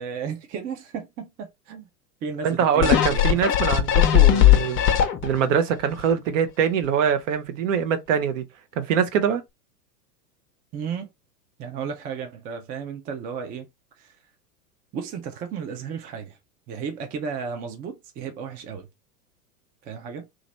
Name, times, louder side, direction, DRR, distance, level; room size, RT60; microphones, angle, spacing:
voice 1, 0.0-1.9 2.2-3.4 10.7-11.1 11.6-13.7 14.0-14.2 14.9-16.4 16.7-18.9 19.8-20.3, right 6 dB, 20° right, 0.4 m, -34 dB
voice 2, 2.4-4.8 5.2-8.4 8.8-9.4, right 7 dB, 55° right, 0.8 m, -23 dB
sound 1, 2.8-5.5 6.0-6.1, left 11 dB, 25° left, 0.7 m, -18 dB
3.0 x 2.5 x 4.0 m
figure-of-eight pair, 95°, 47 cm